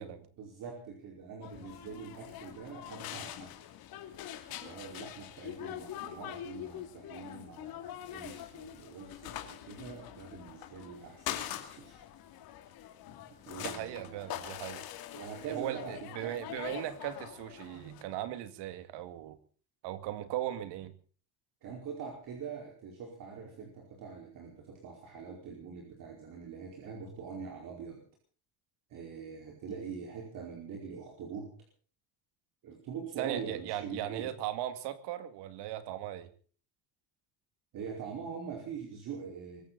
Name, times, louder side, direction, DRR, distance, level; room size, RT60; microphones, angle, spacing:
voice 1, 0.0-3.7 4.6-12.0 13.1-14.5 15.1-16.4 21.6-28.0 28.9-31.5 32.6-34.3 37.7-39.6, right 6 dB, 55° right, 4.9 m, -44 dB
sound 1, 1.4-18.0, left 12 dB, 60° left, 2.8 m, -44 dB
voice 2, 13.6-14.8 15.5-19.4 19.8-20.9 33.2-36.3, right 12 dB, 85° right, 2.3 m, -38 dB
24.0 x 14.5 x 4.1 m
cardioid pair, 165°, 40 cm